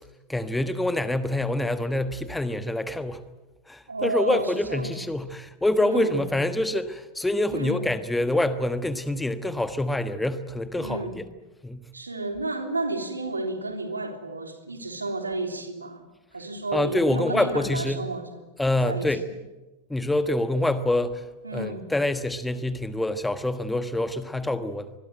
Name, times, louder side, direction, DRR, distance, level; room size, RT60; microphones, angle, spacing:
voice 1, 0.3-3.2 3.7-11.2 11.6-11.8 16.7-18.0 18.6-19.2 19.9-21.2 21.5-24.9, left 1 dB, 5° left, 1.3 m, -26 dB
voice 2, 3.9-4.9 5.8-6.2 7.5-7.9 10.8-11.2 11.9-16.0 16.3-18.4 18.8-19.1 21.4-21.9, right 2 dB, 80° right, 3.3 m, -31 dB
25.0 x 21.5 x 9.1 m
figure-of-eight pair, 90°, 0 cm